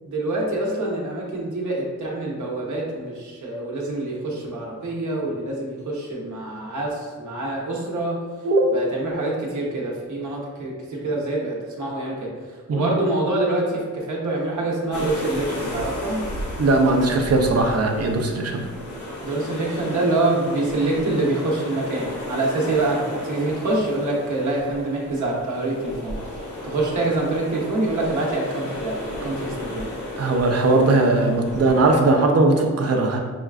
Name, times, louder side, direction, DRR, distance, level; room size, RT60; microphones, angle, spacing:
voice 1, 0.1-8.2 8.7-12.3 12.7-16.2 19.2-26.1 26.6-29.8, right 2 dB, 70° right, -3 dB, 1.0 m, -25 dB
voice 2, 8.4-8.9 12.7-12.9 16.6-18.7 30.2-33.2, right 2 dB, 55° right, 2 dB, 0.6 m, -19 dB
sound 1, 14.9-32.0, left 1 dB, 70° left, 1.3 m, -34 dB
6.0 x 2.3 x 2.4 m, 1.5 s
wide cardioid pair, 100°, 31 cm